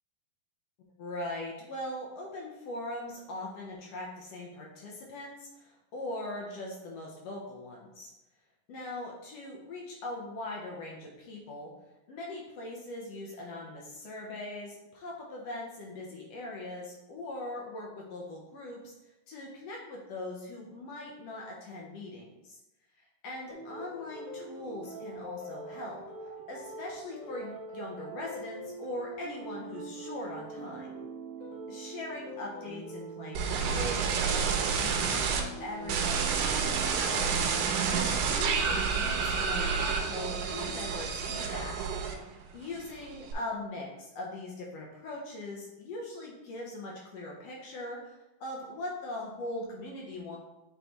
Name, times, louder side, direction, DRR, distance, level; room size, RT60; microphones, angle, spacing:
voice 1, 1.0-8.1 8.7-11.7 12.1-18.9 19.3-22.6 23.0-26.0 26.5-30.9 31.7-37.5 37.9-41.8 42.5-50.4, left 2 dB, 70° left, -2 dB, 1.6 m, -41 dB
sound 1, 23.5-41.8, right 2 dB, 20° left, 1.2 m, -44 dB
sound 2, 33.4-35.4 35.9-42.4 42.8-43.3, right 6 dB, 80° right, 2.3 m, -29 dB
8.0 x 3.9 x 3.1 m, 0.95 s
omnidirectional pair, 4.0 m